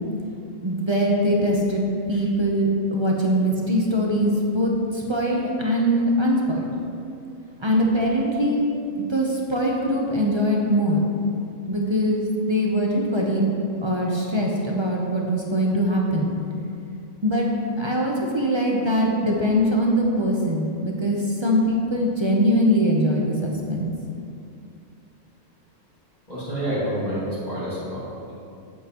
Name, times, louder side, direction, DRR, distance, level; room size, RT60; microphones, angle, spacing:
voice 1, 0.6-6.7 7.6-8.6 9.0-11.0 11.7-13.5 13.8-16.3 17.2-17.5 17.8-23.9, equal, 25° right, -2 dB, 0.6 m, -22 dB
voice 2, 26.3-28.3, equal, 30° left, -10 dB, 2.0 m, -28 dB
8.9 x 7.5 x 3.0 m, 2.6 s
omnidirectional pair, 1.4 m